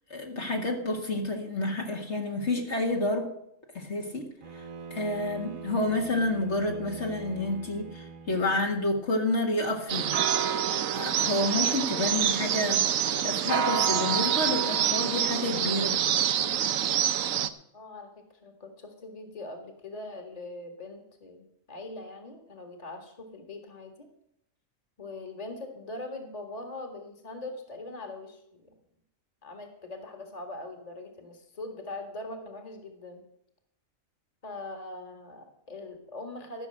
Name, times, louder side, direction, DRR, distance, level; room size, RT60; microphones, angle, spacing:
voice 1, 0.1-3.3 3.7-10.2 10.9-12.9 13.2-16.0, left 2 dB, 55° left, 0 dB, 2.1 m, -29 dB
Bowed string instrument, 4.4-8.9, right 4 dB, 40° right, 1.2 m, -43 dB
sound 1, 9.9-17.5, right 9 dB, 75° right, 1.1 m, -26 dB
voice 2, 17.7-24.1 25.0-28.7 29.4-33.2 34.4-36.7, left 2 dB, 25° left, 4 dB, 1.9 m, -42 dB
14.5 x 6.6 x 7.7 m, 0.77 s
omnidirectional pair, 1.4 m